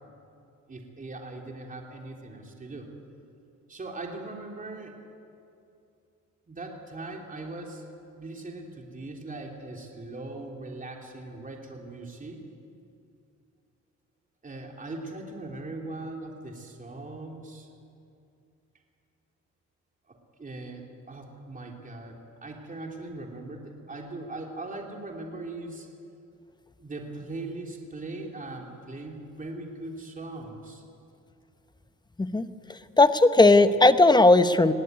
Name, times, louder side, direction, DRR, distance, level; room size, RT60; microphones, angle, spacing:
voice 1, 0.7-2.9 3.7-5.0 6.5-7.8 8.1-12.4 14.4-17.7 20.1-25.9 26.8-30.8, right 2 dB, 25° right, 1 dB, 3.4 m, -40 dB
voice 2, 32.2-34.7, left 2 dB, 15° left, 11 dB, 0.9 m, -18 dB
20.5 x 16.5 x 9.4 m, 2.6 s
cardioid pair, 90°, 30 cm